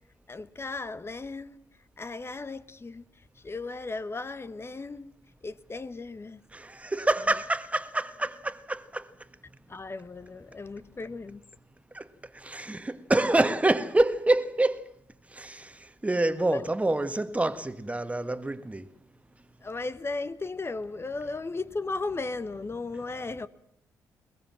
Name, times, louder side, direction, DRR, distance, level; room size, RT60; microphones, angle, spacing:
voice 1, 0.3-1.6 2.0-5.1 5.4-6.4 9.7-11.4 16.5-16.6 19.6-23.5, left 3 dB, 30° left, 1.2 m, -36 dB
voice 2, 6.5-9.1 11.9-12.0 12.3-14.9 15.3-18.8, right 2 dB, 15° right, 1.6 m, -27 dB
21.5 x 20.0 x 7.5 m
hypercardioid pair, 40°, 9 cm